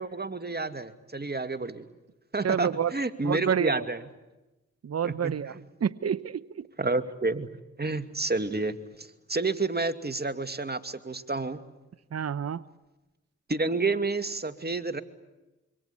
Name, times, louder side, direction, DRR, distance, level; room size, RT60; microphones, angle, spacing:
voice 1, 0.0-1.8 2.3-4.0 5.0-5.6 6.8-7.5 7.8-11.6 13.5-15.0, right 3 dB, 35° right, 9 dB, 2.5 m, -30 dB
voice 2, 2.4-2.9 3.2-3.8 4.8-5.5 5.8-6.7 12.1-12.6, right 8 dB, 55° right, 16 dB, 0.9 m, -28 dB
27.0 x 24.5 x 8.6 m, 1.0 s
supercardioid pair, 40°, 30 cm